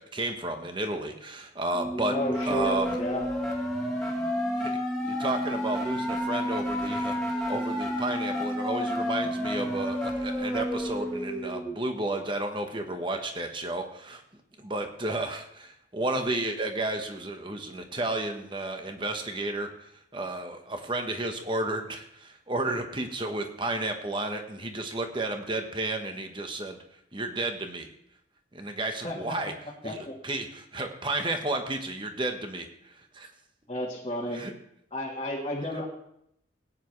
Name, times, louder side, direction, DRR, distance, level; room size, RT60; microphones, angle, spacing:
voice 1, 0.0-2.1 2.4-3.0 4.6-4.8 5.0-14.2 14.6-19.7 20.1-26.8 27.1-27.9 28.5-29.5 29.8-33.3 34.3-34.5, right 2 dB, 25° right, 5 dB, 1.1 m, -32 dB
sound 1, 1.7-11.7, equal, ahead, 2.1 m, -30 dB
voice 2, 2.1-3.3 29.0-29.2 29.8-30.1 33.7-34.4 34.9-35.8, left 1 dB, 30° left, -5 dB, 1.6 m, -32 dB
17.5 x 9.5 x 3.2 m, 0.74 s
head